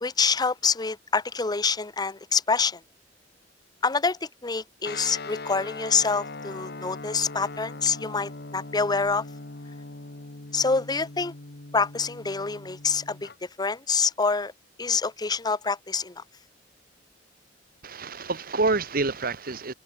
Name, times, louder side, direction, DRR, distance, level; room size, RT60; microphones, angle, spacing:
voice 1, 0.0-2.8 3.8-9.2 10.5-11.3 11.7-13.3 13.6-14.5 14.8-16.2, left 4 dB, 20° left, 0.8 m, -26 dB
Guitar, 4.8-13.4, left 3 dB, 60° left, 1.6 m, -40 dB
voice 2, 17.8-19.7, right 3 dB, 55° right, 1.6 m, -27 dB
head